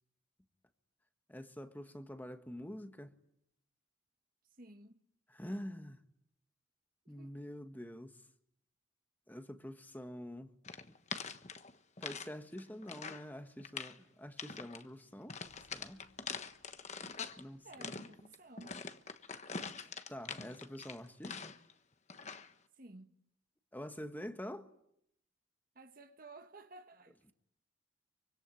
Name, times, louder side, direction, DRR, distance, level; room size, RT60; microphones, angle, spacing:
voice 1, 1.3-3.1 5.3-6.0 7.1-8.2 9.3-10.5 10.9-11.0 12.0-15.4 15.7-16.1 17.4-17.9 19.8-21.6 23.7-24.7, equal, 10° left, 1.5 m, -46 dB
voice 2, 4.6-5.0 7.0-7.3 17.6-18.8 22.7-23.2 25.7-27.3, right 2 dB, 45° right, 1.6 m, -55 dB
sound 1, 10.6-12.3 12.6-13.3 13.6-14.0 14.4-14.8 15.3-17.4 17.7-21.7 22.1-22.5, left 5 dB, 35° left, 1.3 m, -44 dB
sound 2, 15.4-19.5, left 1 dB, 75° left, 5.5 m, -72 dB
26.0 x 25.0 x 9.2 m
head